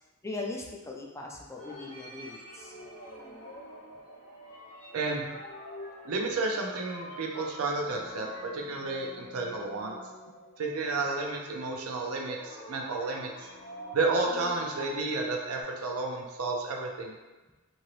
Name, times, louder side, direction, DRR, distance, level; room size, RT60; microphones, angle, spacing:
voice 1, 0.2-2.8, left 2 dB, 15° left, -1 dB, 0.3 m, -39 dB
sound 1, 1.6-11.6 12.3-15.6, left 1 dB, 40° left, 0.8 m, -46 dB
voice 2, 4.9-5.3 6.0-10.0 10.6-13.3 13.9-17.1, right 3 dB, 85° right, 0 dB, 0.5 m, -31 dB
2.8 x 2.7 x 3.0 m, 1.2 s
head